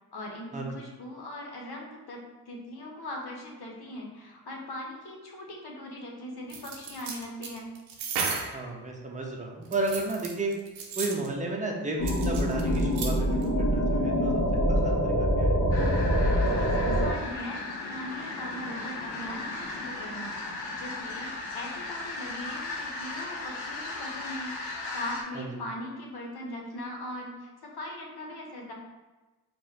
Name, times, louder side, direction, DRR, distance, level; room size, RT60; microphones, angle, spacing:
voice 1, 0.1-7.7 16.4-20.3 20.8-21.3 21.5-28.7, left 1 dB, 55° left, -1 dB, 1.2 m, -40 dB
sound 1, 6.5-8.6 9.6-11.3 12.1-13.1 13.4-13.5, right 5 dB, 90° right, 0.7 m, -34 dB
voice 2, 8.5-10.5 11.0-14.4 14.7-15.6 25.3-25.5, right 2 dB, 15° right, 0 dB, 0.9 m, -33 dB
sound 2, 12.0-17.1, equal, 30° left, 1.1 m, -25 dB
sound 3, 15.7-25.2, left 3 dB, 85° left, 0.8 m, -37 dB
4.7 x 2.5 x 2.9 m, 1.2 s
supercardioid pair, 45°, 45 cm